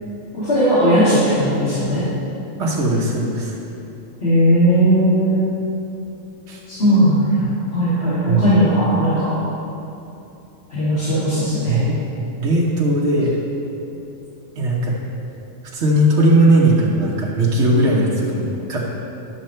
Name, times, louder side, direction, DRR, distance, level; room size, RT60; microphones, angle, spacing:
voice 1, 0.3-2.0 4.2-5.5 6.7-7.4 7.7-9.4 10.7-11.8, equal, 50° left, -12 dB, 2.2 m, -17 dB
voice 2, 2.6-3.6 6.5-6.6 8.2-8.5 11.7-12.0 12.4-13.5 14.6-15.0 15.7-18.8, right 1 dB, 60° right, -5 dB, 1.3 m, -18 dB
11.0 x 6.4 x 4.5 m, 2.9 s
omnidirectional pair, 1.3 m